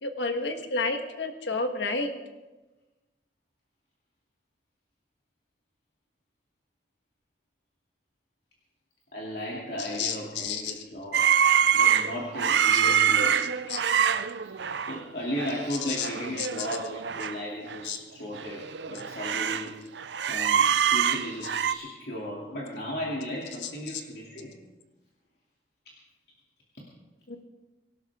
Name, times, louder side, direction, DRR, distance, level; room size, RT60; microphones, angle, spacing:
voice 1, 0.0-2.1 9.8-10.8 12.7-12.8 13.4-13.8 15.7-16.1 16.4-16.7 17.8-18.0 23.6-24.0 27.3-27.4, left 4 dB, 85° left, 6 dB, 1.4 m, -31 dB
voice 2, 9.1-11.3 11.7-13.5 14.4-14.5 14.8-19.7 20.2-24.5, equal, 60° left, -5 dB, 2.8 m, -35 dB
sound 1, 11.1-15.0 15.4-15.6 15.8-17.3 17.7-17.8 18.3-19.7 20.0-21.7, right 8 dB, 80° right, 0.6 m, -25 dB
24.5 x 12.5 x 3.7 m, 1.1 s
head